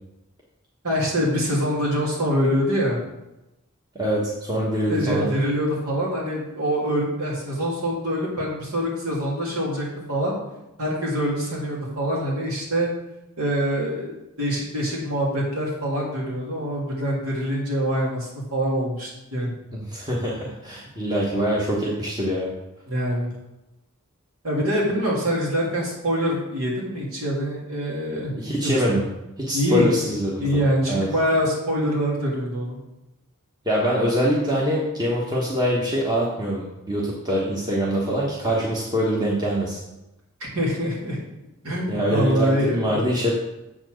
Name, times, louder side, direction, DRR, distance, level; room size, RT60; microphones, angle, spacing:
voice 1, 0.8-3.0 4.9-10.3 10.8-12.9 13.4-14.1 14.4-19.5 22.9-23.3 24.4-28.3 28.6-28.7 29.5-30.0 30.4-32.8 40.4-41.2 41.6-43.0, equal, 80° right, -4 dB, 2.8 m, -24 dB
voice 2, 3.9-5.3 19.7-22.5 28.4-29.0 29.4-31.1 33.6-39.8 41.9-43.3, equal, 20° right, -5 dB, 1.1 m, -24 dB
7.7 x 4.3 x 6.4 m, 0.96 s
head